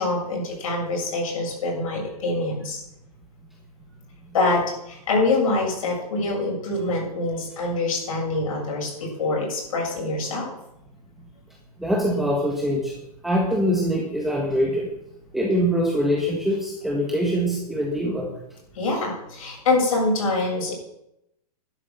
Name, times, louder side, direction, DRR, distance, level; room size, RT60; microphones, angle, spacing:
voice 1, 0.0-2.8 4.3-10.5 18.7-20.7, left 2 dB, 60° left, -1 dB, 7.4 m, -25 dB
voice 2, 11.8-12.9 13.2-14.9 15.3-18.3, equal, ahead, -3 dB, 1.5 m, -23 dB
11.5 x 11.0 x 7.3 m, 0.83 s
hypercardioid pair, 165°, 20 cm